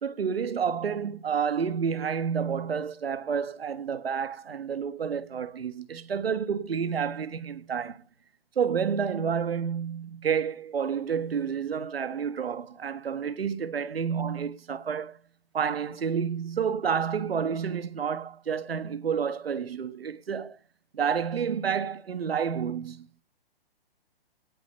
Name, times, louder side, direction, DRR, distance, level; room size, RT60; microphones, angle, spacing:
voice 1, 0.0-8.0 8.5-15.2 15.5-20.6 20.9-23.1, right 7 dB, 75° right, 1.6 m, -29 dB
17.5 x 8.5 x 5.3 m
hypercardioid pair, 135°, 30 cm